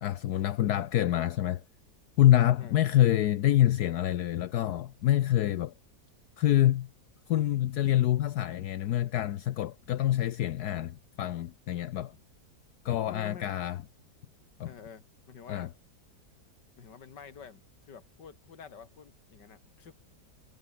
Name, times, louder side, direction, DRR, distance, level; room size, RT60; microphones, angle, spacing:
voice 1, 0.0-1.6 2.2-5.7 6.4-6.9 7.3-12.2 12.8-13.8 14.6-14.7 15.5-15.7, left 13 dB, 70° left, 1.2 m, -26 dB
voice 2, 13.0-13.5 14.6-15.7 16.8-19.9, left 6 dB, 85° left, 2.6 m, -49 dB
omnidirectional pair, 1.8 m